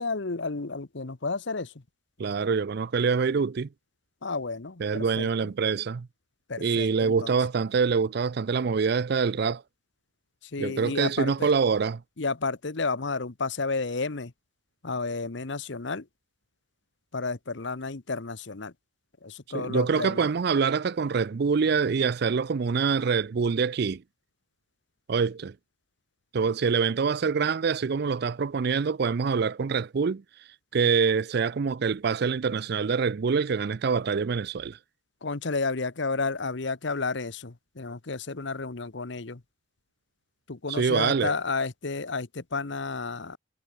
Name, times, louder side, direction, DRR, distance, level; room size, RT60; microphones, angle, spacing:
voice 1, 0.0-1.7 4.2-5.5 6.5-7.3 10.4-11.5 12.2-14.3 14.8-16.1 17.1-18.7 19.2-20.2 35.2-39.4 40.5-43.4, left 3 dB, 60° left, 1.0 m, -31 dB
voice 2, 2.2-3.7 4.8-6.1 6.6-9.6 10.6-12.0 19.5-24.0 25.1-25.5 26.3-30.2 30.7-34.8 40.7-41.3, right 5 dB, 55° right, 0.4 m, -25 dB
head